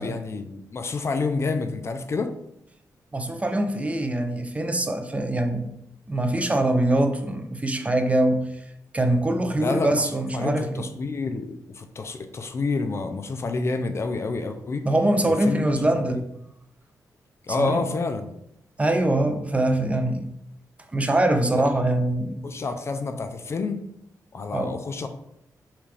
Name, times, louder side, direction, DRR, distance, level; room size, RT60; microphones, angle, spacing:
voice 1, 0.0-2.3 9.6-14.9 15.3-15.6 16.0-16.2 17.5-18.3 21.5-21.6 22.4-23.8 24.3-25.1, left 4 dB, 40° left, 7 dB, 0.4 m, -28 dB
voice 2, 3.1-5.7 6.1-8.6 8.9-10.9 14.8-16.2 17.6-17.9 18.8-20.3 20.9-22.4 24.5-24.7, right 1 dB, 20° right, 6 dB, 0.5 m, -23 dB
5.7 x 2.4 x 3.3 m, 0.77 s
cardioid pair, 105°, 7 cm